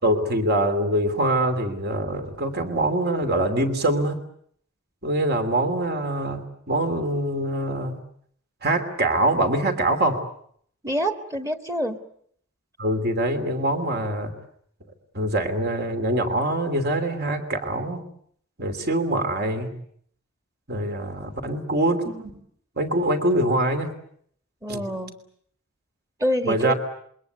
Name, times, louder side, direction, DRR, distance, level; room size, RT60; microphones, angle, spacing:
voice 1, 0.0-4.2 5.0-8.0 8.6-10.2 12.8-14.3 15.1-18.0 18.6-19.7 20.7-22.3 22.8-23.9 24.7-24.8 26.5-26.7, right 1 dB, 50° right, 7 dB, 3.0 m, -24 dB
voice 2, 10.8-12.0 24.6-25.2 26.2-26.7, equal, 15° right, 7 dB, 1.6 m, -26 dB
27.0 x 23.0 x 8.0 m, 0.65 s
head